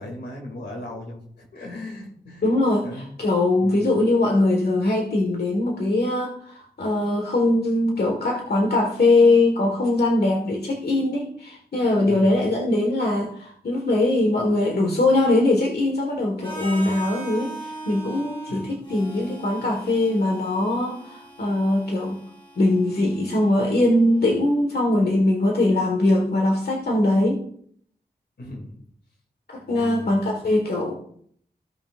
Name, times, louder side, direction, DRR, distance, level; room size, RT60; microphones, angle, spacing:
voice 1, 0.0-2.4 2.8-3.1 3.6-3.9 12.1-12.4 18.5-18.7 28.4-28.7 29.7-30.4, left 1 dB, 90° left, 0 dB, 2.5 m, -38 dB
voice 2, 2.4-22.2 22.6-27.4 29.5-30.9, left 2 dB, 70° left, 1 dB, 1.6 m, -21 dB
Harmonica, 16.4-24.3, right 1 dB, 30° left, 3.6 m, -40 dB
15.5 x 5.7 x 2.5 m, 0.64 s
cardioid pair, 50°, 17 cm